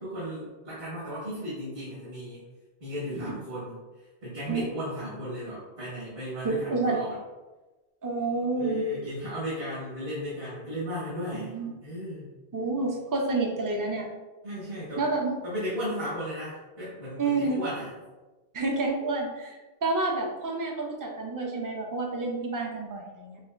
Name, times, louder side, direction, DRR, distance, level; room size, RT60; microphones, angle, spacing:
voice 1, 0.0-2.4 2.8-3.8 4.2-7.2 8.6-11.5 11.8-12.3 14.4-15.0 15.4-17.9, equal, 60° right, -11 dB, 1.7 m, -35 dB
voice 2, 6.4-7.0 8.0-8.8 11.3-11.7 12.5-14.1 15.0-15.4 17.2-17.7 18.5-23.4, right 3 dB, 35° right, 1 dB, 0.3 m, -29 dB
6.0 x 2.2 x 2.5 m, 1.2 s
omnidirectional pair, 1.1 m